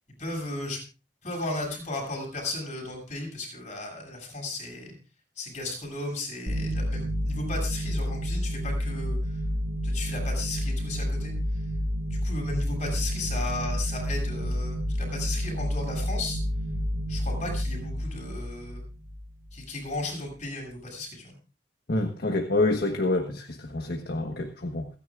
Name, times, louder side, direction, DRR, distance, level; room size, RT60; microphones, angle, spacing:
voice 1, 0.2-0.8 1.2-4.9 5.4-9.4 9.8-11.6 12.1-16.4 17.1-18.8 19.5-21.3, left 2 dB, 45° left, 0 dB, 7.5 m, -35 dB
sound 1, 6.5-19.6, equal, 55° right, 5.6 m, -30 dB
voice 2, 21.9-24.9, left 2 dB, 60° left, 3 dB, 1.4 m, -27 dB
28.5 x 10.5 x 2.5 m, 0.33 s
head